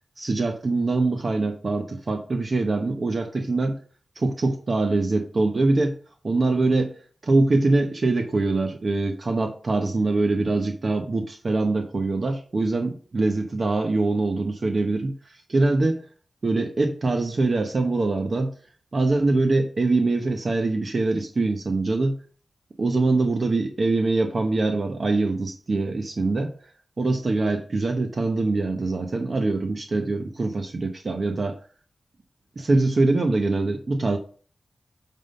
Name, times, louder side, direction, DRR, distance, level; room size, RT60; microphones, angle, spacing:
voice 1, 0.2-3.8 4.2-6.0 6.2-16.0 16.4-18.5 18.9-22.2 22.8-26.5 27.0-31.6 32.6-34.2, right 3 dB, 55° right, 4 dB, 1.0 m, -23 dB
9.1 x 3.8 x 5.5 m, 0.42 s
wide cardioid pair, 85°, 0 cm